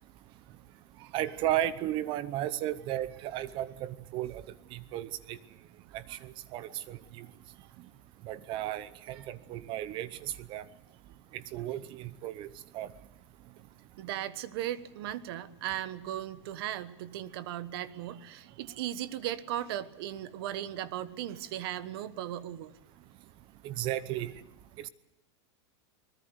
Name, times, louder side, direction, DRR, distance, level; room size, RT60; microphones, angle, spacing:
voice 1, 1.1-4.4 4.7-5.4 5.9-7.3 8.2-10.6 11.3-12.5 12.7-12.9 23.6-24.3 24.8-24.9, right 13 dB, 35° right, 16 dB, 0.8 m, -34 dB
voice 2, 14.0-22.7, right 12 dB, 60° right, 14 dB, 1.3 m, -37 dB
23.5 x 20.5 x 8.1 m, 0.83 s
supercardioid pair, 155°, 14 cm